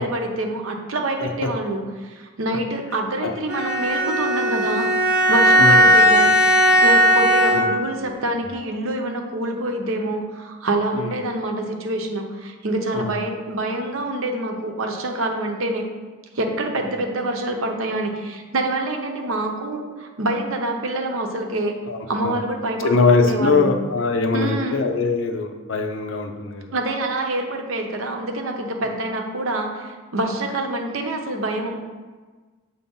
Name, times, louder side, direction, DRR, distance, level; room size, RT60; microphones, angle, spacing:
voice 1, 0.0-6.3 6.8-15.8 16.3-21.8 22.1-23.7 24.3-24.8 26.7-31.8, right 1 dB, 80° right, 3 dB, 0.8 m, -26 dB
Bowed string instrument, 3.5-8.0, equal, 5° right, 0.4 m, -16 dB
voice 2, 21.9-22.4 22.8-26.7, left 4 dB, 70° left, 5 dB, 0.6 m, -21 dB
7.2 x 2.8 x 5.4 m, 1.4 s
head